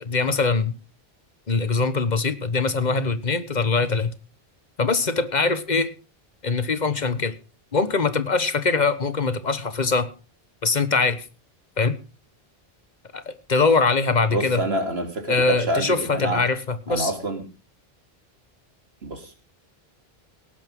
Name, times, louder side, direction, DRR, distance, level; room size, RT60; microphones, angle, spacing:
voice 1, 0.0-0.7 1.5-4.1 4.8-5.9 6.4-7.3 7.7-10.1 10.6-11.3 11.8-12.0 13.1-14.6 15.3-17.1, left 4 dB, 45° left, 13 dB, 1.3 m, -22 dB
voice 2, 14.3-16.4 16.9-17.4 19.0-19.3, right 1 dB, 80° right, 5 dB, 3.3 m, -27 dB
18.0 x 11.0 x 3.7 m, 0.33 s
omnidirectional pair, 1.0 m